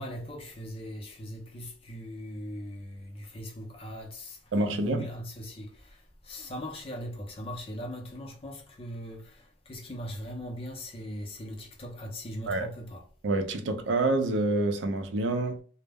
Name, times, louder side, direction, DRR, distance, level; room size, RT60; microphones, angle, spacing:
voice 1, 0.0-13.0, equal, 30° left, 0.5 m, -40 dB
voice 2, 4.5-5.1 12.5-12.7 13.2-15.6, right 2 dB, 90° right, 0.4 m, -27 dB
2.0 x 2.0 x 3.4 m
head